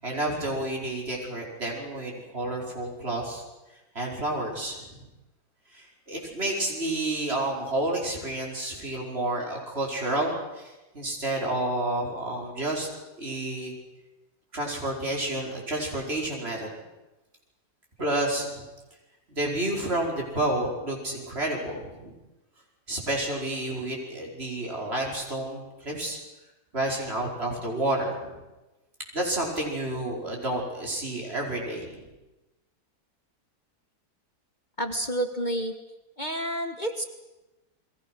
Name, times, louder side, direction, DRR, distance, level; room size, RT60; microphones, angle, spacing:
voice 1, 0.0-3.4 4.0-4.8 5.7-12.9 13.2-13.7 14.5-16.7 18.0-18.6 19.3-22.1 22.9-26.2 26.7-28.4 29.1-32.1, right 1 dB, 40° right, -1 dB, 5.2 m, -30 dB
voice 2, 34.8-35.7 36.2-37.0, right 1 dB, 30° left, 5 dB, 1.6 m, -29 dB
29.0 x 21.5 x 6.3 m, 1.1 s
omnidirectional pair, 1.7 m